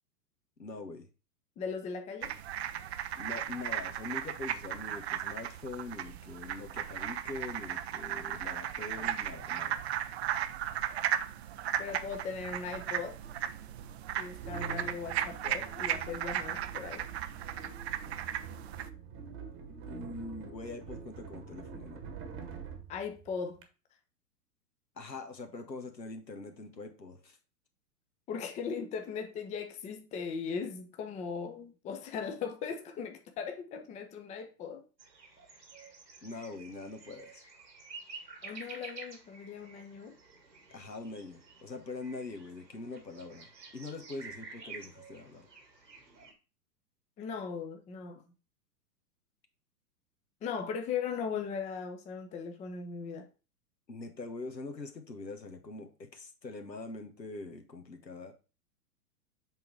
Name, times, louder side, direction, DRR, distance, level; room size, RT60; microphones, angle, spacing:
voice 1, 0.6-1.1 3.2-9.8 19.7-22.0 25.0-27.4 36.2-37.4 40.7-45.5 53.9-58.3, left 3 dB, 85° left, 1.5 m, -43 dB
voice 2, 1.6-2.3 11.8-13.2 14.2-17.1 22.9-23.6 28.3-34.8 38.4-40.1 47.2-48.2 50.4-53.3, left 6 dB, 15° left, 0.7 m, -38 dB
sound 1, 2.2-18.9, right 11 dB, 40° right, 0.6 m, -36 dB
sound 2, 13.1-23.7, right 5 dB, 25° right, 1.2 m, -46 dB
sound 3, 35.0-46.3, right 4 dB, 80° right, 2.0 m, -50 dB
7.6 x 3.8 x 4.6 m
figure-of-eight pair, 105°, 49 cm